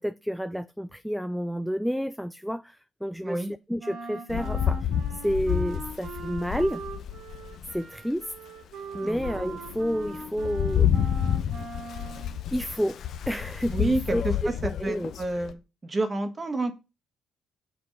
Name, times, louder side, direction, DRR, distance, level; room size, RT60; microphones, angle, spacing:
voice 1, 0.0-4.9 5.2-6.8 7.7-8.3 8.9-11.1 12.5-15.1, equal, ahead, 0.4 m, -30 dB
voice 2, 3.2-3.5 9.0-9.2 13.7-16.7, right 2 dB, 25° right, 1.4 m, -29 dB
Wind instrument woodwind instrument, 3.8-12.4, right 3 dB, 75° right, 1.9 m, -41 dB
Rain, 4.3-7.8 8.4-8.5 8.9-15.5, left 9 dB, 70° left, 0.7 m, -29 dB
6.3 x 4.7 x 5.2 m
cardioid pair, 90°, 0 cm